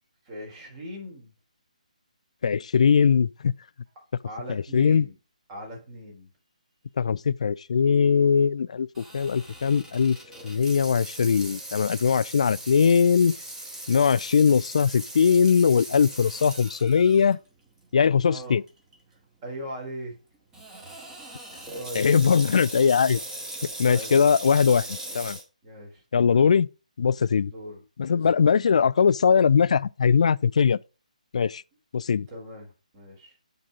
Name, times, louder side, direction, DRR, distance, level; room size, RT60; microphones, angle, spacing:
voice 1, 0.2-1.3 4.2-5.1 5.5-6.3 18.3-18.6 19.4-20.1 21.8-22.4 23.8-24.2 24.6-25.3 25.6-26.5 27.4-27.8 28.1-28.2 32.3-33.4, equal, 25° right, 3.8 m, -40 dB
voice 2, 2.4-3.5 4.5-5.1 7.0-10.2 10.4-13.3 13.9-17.4 17.9-18.6 22.0-23.2 23.8-24.8 25.1-25.4 26.1-26.7 27.0-27.5 28.0-30.8 31.3-31.6 31.9-32.3, left 6 dB, 55° left, 0.4 m, -21 dB
Water tap faucet / Sink (filling or washing), 8.9-17.3 17.8-17.9 18.7-18.9 20.5-25.4, right 1 dB, 10° right, 2.0 m, -39 dB
9.8 x 4.0 x 4.9 m
figure-of-eight pair, 140°, 4 cm